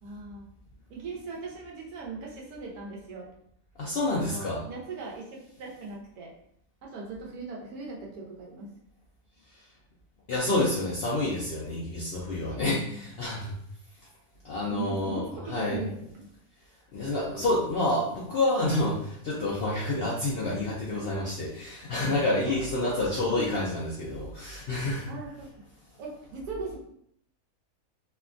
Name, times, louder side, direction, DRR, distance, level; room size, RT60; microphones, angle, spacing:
voice 1, 0.0-0.5 0.9-3.3 4.1-5.2 5.6-6.3 6.8-8.7 12.9-13.1 14.7-16.3 22.1-22.2 22.5-23.1 25.1-25.5 26.0-26.8, right 4 dB, 90° right, -2 dB, 1.3 m, -39 dB
voice 2, 3.8-4.6 10.3-13.5 14.4-15.2 15.5-15.8 16.9-25.1, left 2 dB, 65° left, -5 dB, 0.5 m, -28 dB
3.2 x 2.2 x 2.4 m, 0.70 s
omnidirectional pair, 1.6 m